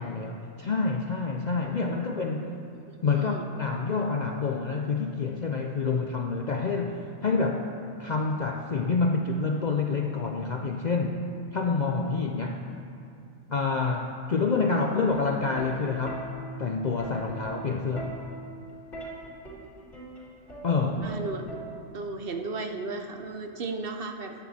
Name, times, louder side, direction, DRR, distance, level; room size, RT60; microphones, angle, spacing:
voice 1, 0.0-2.5 3.0-7.7 8.0-11.2 11.5-12.6 13.5-16.3 16.6-18.2 20.6-21.0, left 4 dB, 60° left, 3 dB, 0.4 m, -27 dB
voice 2, 2.9-3.4 19.2-19.7 21.0-21.6 21.9-24.3, right 3 dB, 55° right, 5 dB, 0.8 m, -35 dB
Plucked string instrument, 15.1-22.1 23.2-23.5, right 2 dB, 40° left, 2.5 m, -42 dB
13.5 x 9.0 x 4.2 m, 2.6 s
omnidirectional pair, 1.4 m